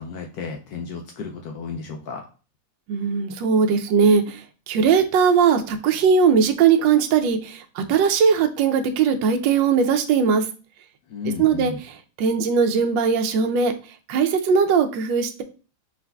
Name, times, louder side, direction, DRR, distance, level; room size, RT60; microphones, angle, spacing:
voice 1, 0.0-2.3 11.1-11.8, left 5 dB, 70° left, 2 dB, 0.9 m, -33 dB
voice 2, 2.9-10.5 11.4-11.7 12.2-13.7 14.1-15.4, right 6 dB, 80° right, 5 dB, 1.2 m, -19 dB
4.6 x 3.8 x 2.2 m, 0.36 s
omnidirectional pair, 2.0 m